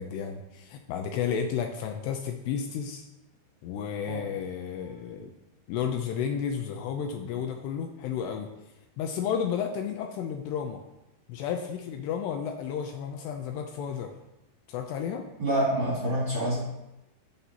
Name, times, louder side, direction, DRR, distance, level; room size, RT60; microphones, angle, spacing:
voice 1, 0.0-3.1 3.6-5.3 5.7-8.5 9.0-10.8 11.3-14.1 14.7-15.3, left 7 dB, 80° left, 4 dB, 2.6 m, -32 dB
voice 2, 15.4-16.6, right 1 dB, 45° right, -7 dB, 1.9 m, -27 dB
17.0 x 5.8 x 2.9 m, 0.95 s
omnidirectional pair, 5.2 m